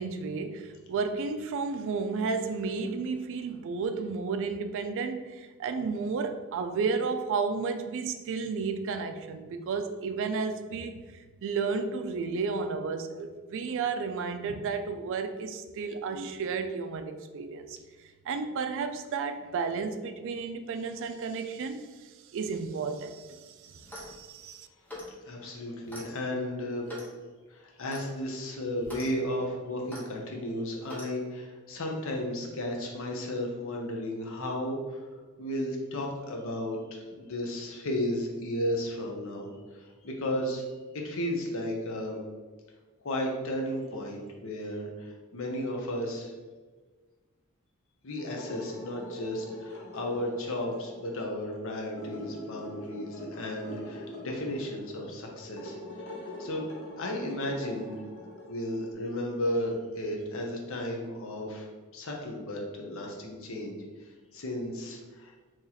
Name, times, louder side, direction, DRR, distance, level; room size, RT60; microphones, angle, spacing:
voice 1, 0.0-17.8 18.3-24.7, right 4 dB, 60° right, 8 dB, 0.3 m, -32 dB
Clock, 23.8-24.2 24.9-25.2 25.9-26.1 26.9-27.1 27.9-28.1 28.8-29.1 29.9-30.1 30.9-31.1, left 1 dB, 10° left, 0.8 m, -42 dB
voice 2, 25.3-26.9 27.5-35.0 35.4-40.6 40.9-42.2 43.0-46.3 48.0-55.8 56.2-56.6 57.0-58.0 58.5-61.7 61.9-65.3, left 1 dB, 65° left, 0 dB, 0.7 m, -34 dB
sound 1, 48.2-58.9, left 1 dB, 90° left, 1.0 m, -43 dB
3.0 x 2.8 x 3.8 m, 1.4 s
head